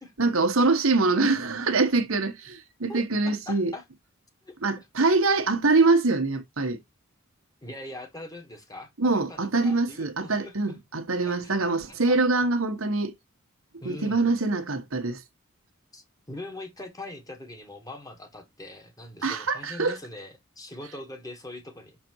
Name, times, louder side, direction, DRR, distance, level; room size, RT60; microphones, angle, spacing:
voice 1, 0.2-3.7 4.6-6.8 9.0-13.1 13.8-15.2 19.2-20.0, right 3 dB, 85° right, 1.4 m, -24 dB
voice 2, 2.9-3.8 4.4-5.1 7.6-10.6 11.1-12.2 13.8-14.3 15.9-22.0, left 1 dB, 15° left, 1.6 m, -42 dB
6.6 x 4.3 x 4.6 m
head